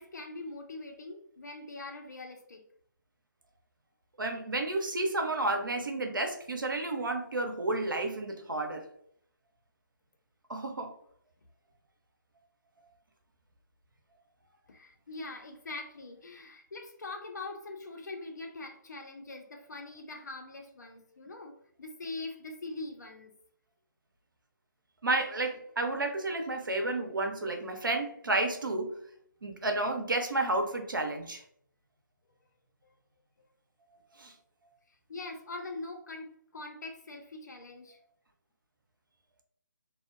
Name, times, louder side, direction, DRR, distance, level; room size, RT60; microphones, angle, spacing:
voice 1, 0.0-2.6 14.7-23.3 35.1-38.0, left 2 dB, 60° left, 4 dB, 0.5 m, -43 dB
voice 2, 4.2-8.9 10.5-10.9 25.0-28.9 29.4-31.4 34.2-34.3, right 2 dB, 85° right, 4 dB, 0.6 m, -31 dB
2.6 x 2.0 x 2.4 m, 0.64 s
figure-of-eight pair, 150°, 11 cm